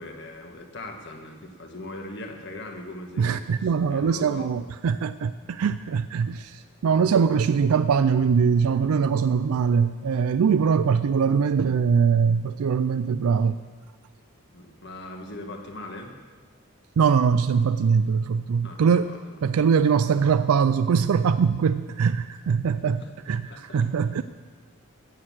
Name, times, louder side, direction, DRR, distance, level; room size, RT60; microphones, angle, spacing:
voice 1, 0.0-4.5 14.5-16.1 18.6-19.6 23.0-23.1 23.4-23.8, left 1 dB, 50° left, 3 dB, 1.5 m, -40 dB
voice 2, 3.2-13.6 17.0-19.1 19.4-23.0 23.3-24.2, right 6 dB, 80° right, 12 dB, 0.4 m, -22 dB
15.5 x 6.5 x 7.4 m, 1.4 s
head